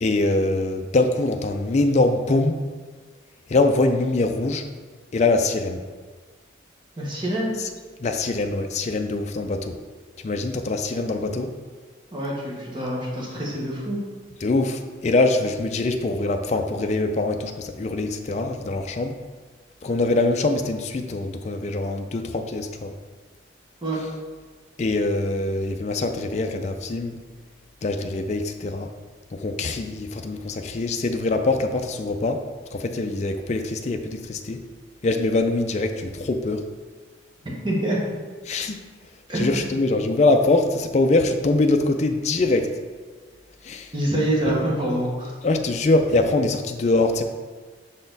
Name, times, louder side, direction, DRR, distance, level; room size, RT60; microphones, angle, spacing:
voice 1, 0.0-2.6 3.5-4.6 5.1-5.8 8.0-9.8 10.2-11.5 14.4-19.2 19.8-22.9 24.8-27.1 27.8-28.9 29.3-32.4 32.7-34.6 35.0-36.7 38.5-38.8 39.3-42.7 43.6-43.9 44.5-44.6 45.4-47.2, left 2 dB, 35° left, 5 dB, 0.4 m, -23 dB
voice 2, 7.0-7.5 12.1-14.0 23.8-24.0 37.6-38.0 39.3-39.7 43.9-45.3, right 1 dB, 25° right, -4 dB, 1.1 m, -25 dB
5.7 x 4.2 x 3.9 m, 1.4 s
head